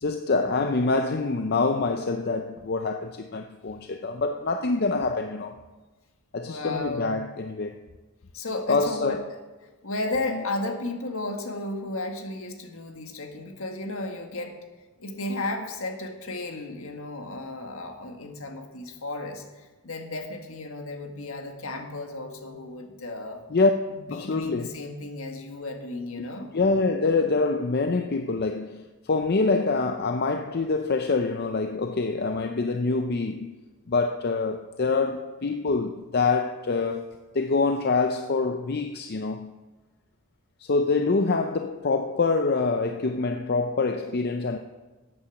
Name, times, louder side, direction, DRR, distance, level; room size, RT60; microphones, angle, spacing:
voice 1, 0.0-5.6 6.3-7.8 8.7-9.2 10.3-10.4 23.5-23.7 24.1-24.7 26.5-33.5 33.9-37.1 37.3-39.5 40.6-44.6, left 3 dB, 45° left, 0.5 m, -25 dB
voice 2, 6.4-7.1 8.3-9.2 9.8-14.6 15.0-23.4 23.9-26.5, left 2 dB, 70° left, 1.7 m, -34 dB
13.0 x 8.7 x 7.1 m
head